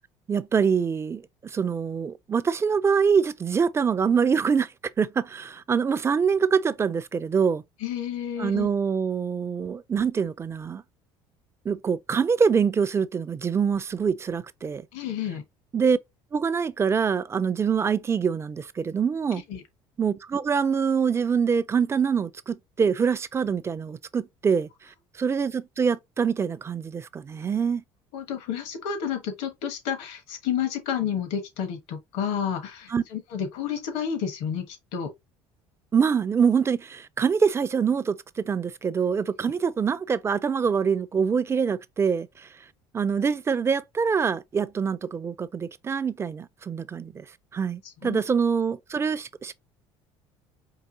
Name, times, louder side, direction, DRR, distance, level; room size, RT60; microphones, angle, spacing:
voice 1, 0.3-4.7 5.0-7.6 8.4-10.8 11.7-14.9 15.7-16.0 16.3-19.4 20.0-24.7 25.2-27.8 32.9-33.0 35.9-42.5 42.9-47.3 47.5-49.5, right 6 dB, 25° right, 0.3 m, -25 dB
voice 2, 7.8-8.7 14.9-15.4 19.5-19.6 28.1-35.1 48.0-48.2, left 8 dB, 80° left, 1.1 m, -30 dB
4.7 x 2.7 x 2.7 m
supercardioid pair, 100°, 11 cm